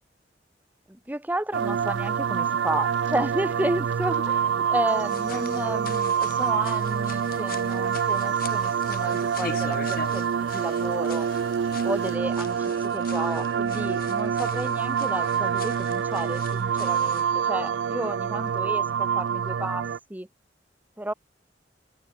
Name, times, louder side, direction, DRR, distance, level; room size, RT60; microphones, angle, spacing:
voice 1, 0.9-11.3 11.8-19.8 20.1-20.3 21.0-21.1, right 1 dB, 10° right, 0.9 m, -32 dB
sound 1, 1.5-12.2, right 8 dB, 30° right, 2.9 m, -61 dB
sound 2, 1.5-20.0, right 7 dB, 80° right, 0.4 m, -26 dB
sound 3, 5.0-17.3, left 5 dB, 55° left, 2.8 m, -43 dB
open air
head